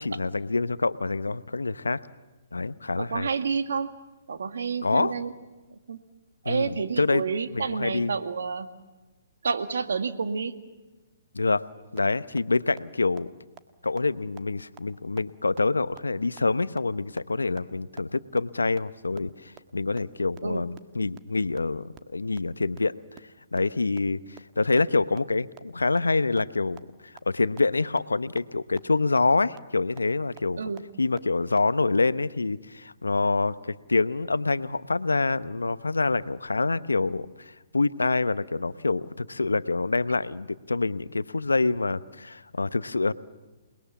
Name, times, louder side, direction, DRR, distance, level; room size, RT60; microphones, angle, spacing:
voice 1, 0.0-2.0 2.5-3.3 4.8-5.1 6.4-7.2 7.5-8.1 11.3-11.6 11.9-13.3 13.8-22.9 23.5-30.6 31.0-43.1, left 3 dB, 85° left, 15 dB, 0.9 m, -26 dB
voice 2, 3.0-3.9 4.3-5.3 5.9-6.0 6.4-8.7 9.4-10.5 20.4-20.6 30.6-30.8, right 5 dB, 70° right, 8 dB, 1.9 m, -29 dB
sound 1, 12.0-12.1 12.4-12.5 12.8-12.9 13.2-13.3 13.6-13.7 14.0-14.1 14.4-14.5 14.8-14.9 15.2-15.3 15.6-15.7 16.0-16.1 16.4-16.5 16.8-16.9 17.2-17.3 17.6-17.7 18.0-18.1 18.4-18.5 18.8-18.9 19.2-19.3 19.6-19.7 20.0-20.1 20.4-20.5 20.8-20.9 21.1-21.2 21.5-21.6 21.9-22.0 22.3-22.4 22.7-22.8 23.1-23.2 23.6-23.7 24.0-24.1 24.4-24.5 24.8-24.9 25.2-25.3 25.6-25.7 26.0-26.1 26.4-26.5 26.8-26.9 27.2-27.3 27.6-27.7 28.0-28.1 28.4-28.5 28.8-28.9 29.2-29.3 29.6-29.7 30.0-30.1 30.4-30.5 30.8-30.9 31.2-31.3 31.6-31.7, right 13 dB, 30° right, 1.4 m, -45 dB
28.5 x 21.0 x 7.2 m, 1.2 s
figure-of-eight pair, 130°, 0 cm